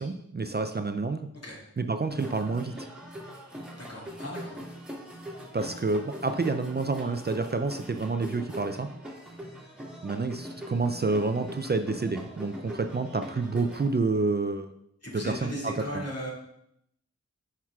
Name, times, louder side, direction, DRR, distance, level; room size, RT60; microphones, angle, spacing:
voice 1, 0.0-1.3 1.8-2.9 5.5-8.9 10.0-14.7 15.1-16.0, right 3 dB, 35° right, 8 dB, 0.4 m, -29 dB
sound 1, 2.1-13.9, equal, 5° right, 2.0 m, -42 dB
voice 2, 3.8-4.6 5.6-5.7 15.0-16.3, equal, 55° left, -5 dB, 2.3 m, -37 dB
9.2 x 5.7 x 2.4 m, 0.76 s
wide cardioid pair, 50°, 30 cm